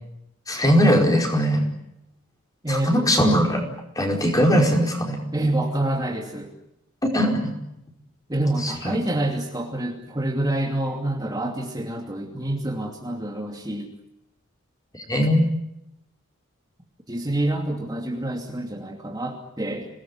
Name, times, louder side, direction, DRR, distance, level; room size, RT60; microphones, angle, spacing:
voice 1, 0.5-1.6 2.7-3.6 3.9-5.2 7.1-7.6 8.6-9.0 14.9-15.5, equal, 15° left, 1 dB, 4.9 m, -20 dB
voice 2, 2.6-3.1 5.3-6.5 8.3-13.9 17.1-19.9, right 1 dB, 20° right, 0 dB, 2.7 m, -27 dB
26.5 x 19.5 x 9.6 m, 0.84 s
head